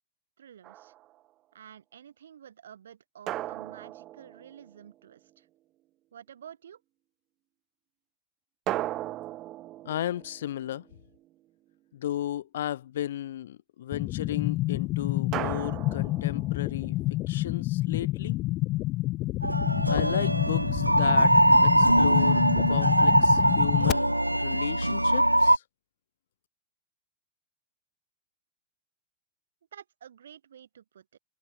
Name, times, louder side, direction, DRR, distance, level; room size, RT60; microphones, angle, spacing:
voice 1, 0.4-0.9 1.5-5.5 6.1-6.8 29.7-31.2, right 9 dB, 65° right, 5.8 m, -50 dB
sound 1, 0.6-1.2 3.3-5.1 8.7-11.3 15.3-17.0, right 15 dB, 35° right, 4.5 m, -37 dB
voice 2, 9.8-10.9 11.9-17.0 17.3-18.4 19.9-21.4 21.6-25.6, left 12 dB, 60° left, 1.9 m, -34 dB
sound 2, 13.9-23.9, left 18 dB, 40° left, 1.1 m, -29 dB
sound 3, 19.4-25.6, right 1 dB, 85° right, 0.5 m, -22 dB
figure-of-eight pair, 90°, 0 cm